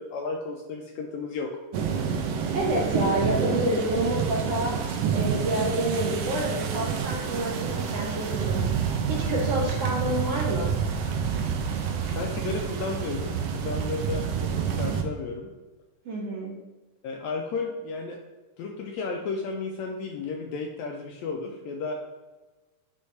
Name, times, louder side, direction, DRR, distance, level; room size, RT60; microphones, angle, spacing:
voice 1, 0.0-1.5 12.2-15.5 17.0-18.2 18.6-21.9, left 4 dB, 80° left, 2 dB, 1.6 m, -33 dB
sound 1, 1.7-15.0, right 6 dB, 80° right, 1.4 m, -28 dB
voice 2, 2.5-4.8 5.1-10.7 16.0-16.6, right 1 dB, 65° right, -3 dB, 1.6 m, -28 dB
9.8 x 3.5 x 3.2 m, 1.2 s
omnidirectional pair, 3.6 m